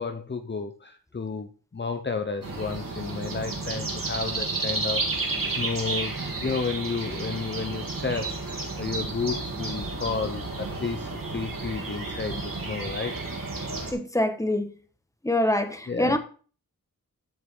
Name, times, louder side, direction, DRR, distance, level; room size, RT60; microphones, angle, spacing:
voice 1, 0.0-5.0 5.5-13.2 15.9-16.2, left 4 dB, 30° left, 0.8 m, -32 dB
sound 1, 2.4-13.9, right 3 dB, 65° right, 3.5 m, -32 dB
voice 2, 13.9-14.7 15.2-16.2, left 1 dB, 10° left, 1.6 m, -25 dB
13.5 x 5.9 x 3.9 m
cardioid pair, 55°, 36 cm